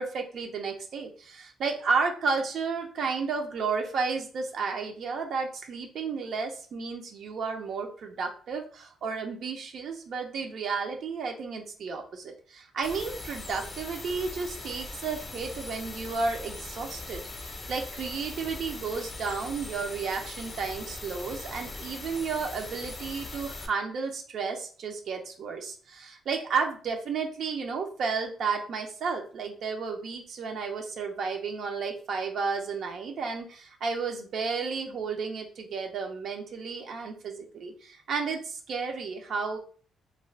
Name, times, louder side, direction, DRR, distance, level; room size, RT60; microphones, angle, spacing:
voice 1, 0.0-39.6, right 5 dB, 65° right, 3 dB, 0.6 m, -32 dB
sound 1, 12.8-23.7, left 2 dB, 35° left, 0.6 m, -41 dB
2.5 x 2.3 x 3.2 m, 0.43 s
cardioid pair, 90°, 0 cm